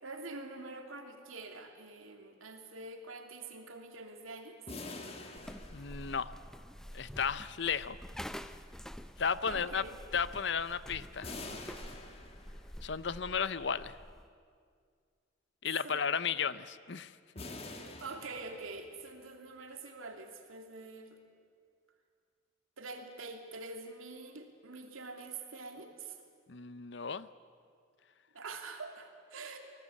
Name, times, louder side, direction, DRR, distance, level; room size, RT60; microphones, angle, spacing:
voice 1, 0.0-4.6 9.5-10.0 15.8-16.0 16.3-16.4 18.0-21.2 22.8-26.2 28.3-29.6, right 3 dB, 90° right, 4 dB, 2.8 m, -45 dB
sound 1, 4.7-6.5 11.2-12.9 17.4-19.0, left 2 dB, 30° left, 1.9 m, -46 dB
sound 2, 5.4-14.3, equal, 5° left, 0.6 m, -48 dB
voice 2, 5.7-6.3 6.9-8.0 9.2-9.8 10.1-11.3 12.8-14.0 15.6-17.4 26.5-27.3, left 6 dB, 60° left, 15 dB, 0.7 m, -34 dB
25.5 x 19.0 x 8.4 m, 2.1 s
head